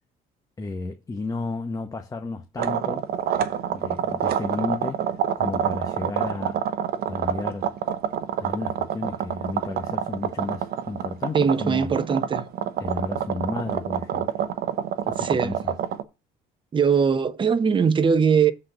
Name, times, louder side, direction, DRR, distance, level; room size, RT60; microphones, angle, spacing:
voice 1, 0.6-3.1 3.7-5.0 5.4-6.6 7.0-7.7 8.4-11.9 12.8-14.3 15.0-15.7, left 3 dB, 20° left, 0.8 m, -32 dB
sound 1, 2.6-16.0, right 9 dB, 65° right, 0.8 m, -27 dB
voice 2, 11.3-12.5 15.2-15.6 16.7-18.5, right 6 dB, 30° right, 0.8 m, -21 dB
7.5 x 4.1 x 6.6 m
cardioid pair, 110°, 17 cm